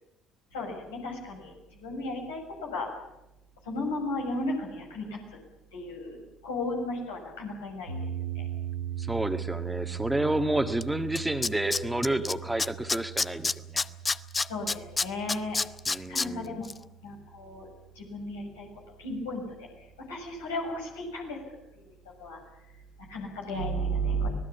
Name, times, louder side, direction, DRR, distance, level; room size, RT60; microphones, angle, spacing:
voice 1, 0.5-1.5 1.8-2.9 3.6-5.4 5.7-8.1 8.3-8.5 14.5-15.6 16.1-16.7 17.0-17.7 17.9-19.7 20.1-21.4 22.2-22.4 23.0-24.3, equal, 80° left, 0 dB, 6.8 m, -34 dB
sound 1, 7.9-18.1, right 9 dB, 80° right, 2.3 m, -39 dB
voice 2, 9.0-13.8 15.9-16.6, right 1 dB, 10° right, 8 dB, 1.7 m, -30 dB
Tools, 10.8-10.9 11.2-12.3 12.6-16.3 16.6-16.7, left 3 dB, 25° left, 0.8 m, -27 dB
25.5 x 18.5 x 7.1 m, 0.92 s
figure-of-eight pair, 55°, 0 cm